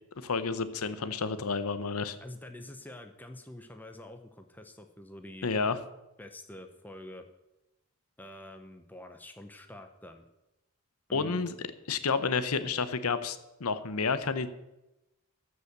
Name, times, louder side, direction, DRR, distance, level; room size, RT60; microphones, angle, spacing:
voice 1, 0.2-2.2 5.4-5.8 11.1-11.5 11.9-14.5, left 4 dB, 85° left, 13 dB, 0.8 m, -30 dB
voice 2, 2.2-5.5 6.2-7.2 8.2-10.2 11.1-11.4, left 1 dB, 10° left, 6 dB, 0.7 m, -46 dB
14.0 x 5.6 x 6.7 m, 0.95 s
head